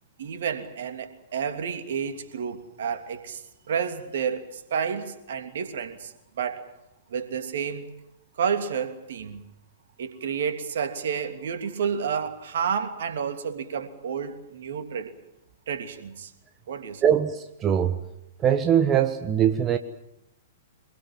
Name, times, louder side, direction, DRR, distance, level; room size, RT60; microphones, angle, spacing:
voice 1, 0.2-6.6 7.1-7.9 8.4-9.4 10.0-15.1 15.7-16.3 16.7-17.0, right 7 dB, 60° right, 3.0 m, -30 dB
voice 2, 17.0-18.0 18.4-19.8, right 9 dB, 25° right, 1.4 m, -22 dB
25.0 x 22.5 x 7.6 m
figure-of-eight pair, 110°, 0 cm